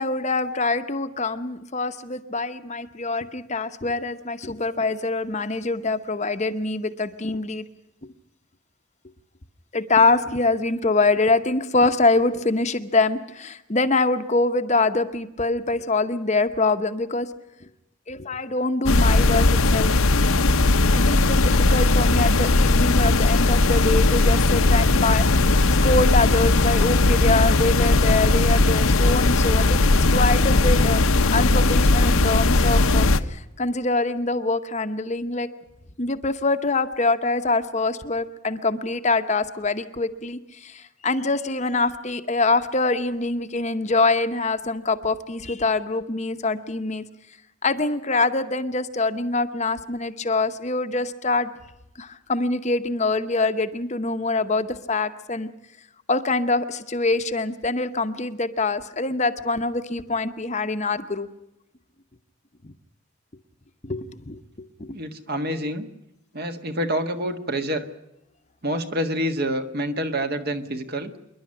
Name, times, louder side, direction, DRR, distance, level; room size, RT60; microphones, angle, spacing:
voice 1, 0.0-7.6 9.7-17.3 18.1-19.9 20.9-29.8 30.1-31.0 31.3-35.5 36.0-47.0 47.6-51.5 52.0-55.5 56.1-61.3 62.6-62.7 63.8-64.9, left 3 dB, 30° left, 9 dB, 0.9 m, -24 dB
sound 1, 18.9-33.2, left 2 dB, 75° left, 0.9 m, -18 dB
voice 2, 64.9-65.9 66.3-67.8 68.6-71.1, equal, 45° right, 7 dB, 1.7 m, -27 dB
26.5 x 11.5 x 9.8 m, 0.90 s
head